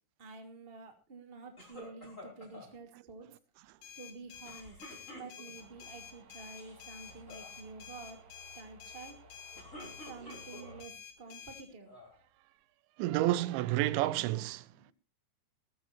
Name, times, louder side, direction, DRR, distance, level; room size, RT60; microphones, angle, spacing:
voice 1, 0.2-3.3 4.0-4.8 5.1-8.2 8.5-9.2 10.0-11.9 14.8-14.9, right 4 dB, 15° right, 2.0 m, -49 dB
sound 1, 1.6-2.7 4.4-5.7 6.4-6.8 7.1-7.5 9.3-10.8 11.4-12.2, left 1 dB, 15° left, 5.3 m, -50 dB
sound 2, 3.8-11.7, left 8 dB, 75° left, 4.0 m, -50 dB
sound 3, 5.5-10.8, right 2 dB, 55° right, 1.6 m, -57 dB
voice 2, 13.0-14.7, right 15 dB, 90° right, 3.1 m, -30 dB
20.5 x 13.5 x 2.6 m
omnidirectional pair, 5.1 m